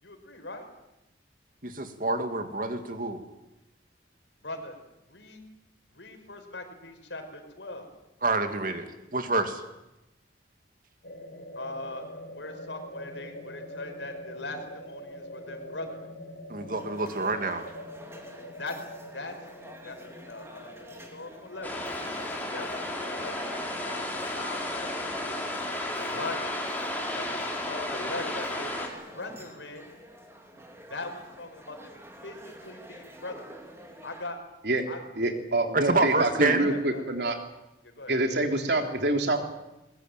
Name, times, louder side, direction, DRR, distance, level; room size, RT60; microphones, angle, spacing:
voice 1, 0.0-0.6 4.4-4.8 5.1-5.4 5.9-7.9 11.5-12.0 12.3-16.1 18.6-18.7 19.1-19.3 19.8-21.8 22.5-25.3 25.9-26.7 27.1-30.0 30.9-31.9 32.2-33.6 34.0-34.4 34.9-35.0 36.6-37.0 37.8-38.2, left 2 dB, 90° left, 5 dB, 5.2 m, -40 dB
voice 2, 1.6-3.2 8.2-8.9 9.1-9.6 16.5-17.7 35.7-36.7, right 3 dB, 50° right, 7 dB, 2.5 m, -27 dB
sound 1, 11.0-30.6, left 1 dB, 70° left, 3.3 m, -46 dB
sound 2, 16.7-34.3, right 1 dB, 15° right, 3.3 m, -49 dB
sound 3, 21.6-28.9, left 1 dB, 10° left, 4.3 m, -33 dB
voice 3, 35.2-37.4 38.1-39.4, right 2 dB, 70° right, 5 dB, 3.3 m, -26 dB
22.0 x 21.5 x 9.2 m, 0.93 s
head